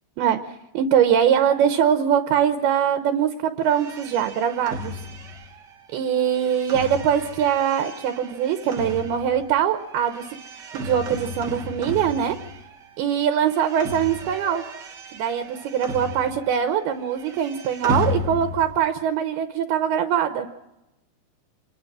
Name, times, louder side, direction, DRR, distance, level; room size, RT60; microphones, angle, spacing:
voice 1, 0.7-5.0 5.9-10.2 10.7-12.4 13.0-14.6 15.1-20.5, right 9 dB, 75° right, 7 dB, 2.7 m, -22 dB
sound 1, 3.6-12.9 13.2-16.7 16.9-18.8, left 1 dB, 90° right, 0.9 m, -34 dB
26.5 x 22.0 x 6.1 m, 0.93 s
omnidirectional pair, 5.0 m